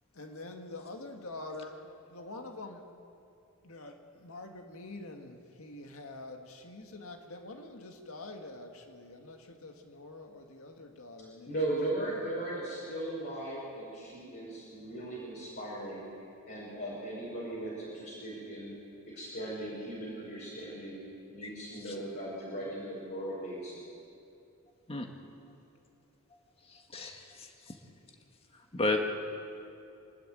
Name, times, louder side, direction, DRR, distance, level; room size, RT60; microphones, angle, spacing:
voice 1, 0.1-2.9 3.6-11.5, left 2 dB, 75° left, 4 dB, 2.0 m, -46 dB
voice 2, 11.5-16.1 16.5-18.7 19.1-21.0 21.3-23.8, right 1 dB, 50° left, -7 dB, 5.7 m, -38 dB
voice 3, 26.7-27.8 28.5-29.0, left 2 dB, 25° left, 3 dB, 1.9 m, -34 dB
26.5 x 12.5 x 9.2 m, 2.7 s
head